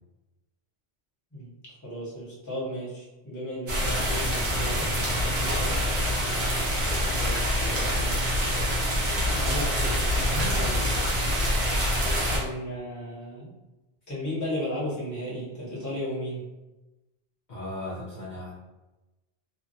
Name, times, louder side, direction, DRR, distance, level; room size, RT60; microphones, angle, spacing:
voice 1, 1.8-5.8 7.2-7.5 8.0-8.1 9.2-10.0 10.3-10.7 12.3-13.5 14.1-16.5, equal, 20° left, -7 dB, 0.9 m, -35 dB
sound 1, 3.7-12.4, equal, 80° right, 1.1 m, -25 dB
voice 2, 7.2-8.0 10.3-10.7 17.5-18.5, left 1 dB, 50° left, -8 dB, 0.8 m, -38 dB
3.1 x 2.3 x 2.6 m, 1.0 s
omnidirectional pair, 1.1 m